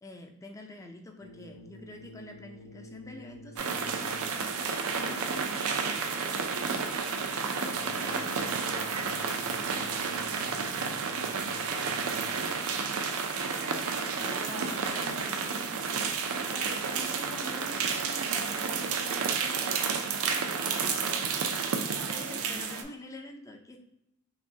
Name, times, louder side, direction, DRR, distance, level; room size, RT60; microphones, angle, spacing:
voice 1, 0.0-5.6 14.0-16.2 22.1-23.8, left 2 dB, 15° left, 3 dB, 0.5 m, -46 dB
sound 1, 1.2-4.6 7.6-12.6, left 1 dB, 85° left, 0.9 m, -50 dB
sound 2, 3.6-22.8, right 5 dB, 70° right, 0.5 m, -31 dB
voice 2, 7.4-12.7 16.5-21.4, equal, 50° left, 0 dB, 0.9 m, -47 dB
5.8 x 2.2 x 2.7 m, 0.84 s
head